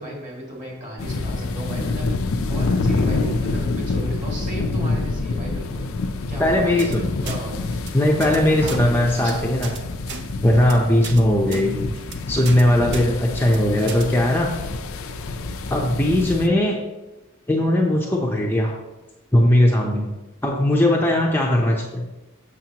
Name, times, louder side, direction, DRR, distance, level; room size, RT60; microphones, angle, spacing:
voice 1, 0.0-2.1 2.5-5.8 6.3-6.9 7.2-7.6 8.6-9.5, right 1 dB, 35° right, -3 dB, 2.2 m, -35 dB
sound 1, 1.0-16.5, left 3 dB, 75° left, 0.5 m, -27 dB
voice 2, 6.4-7.1 7.9-9.7 10.4-11.8 12.3-14.5 15.7-16.8 17.5-18.7 19.3-20.1 20.4-22.0, left 1 dB, 10° left, -1 dB, 0.6 m, -19 dB
sound 2, 6.8-7.0 7.3-7.4 7.7-7.9 8.2-8.4 8.6-8.8 9.1-9.3 9.6-9.8 10.1-10.2 10.5-10.7 11.0-11.2 11.5-11.6 12.0-12.2 12.5-12.6 12.9-13.1 13.4-13.6 13.9-14.0, right 5 dB, 55° right, 0.7 m, -35 dB
7.4 x 6.4 x 2.9 m, 1.1 s
head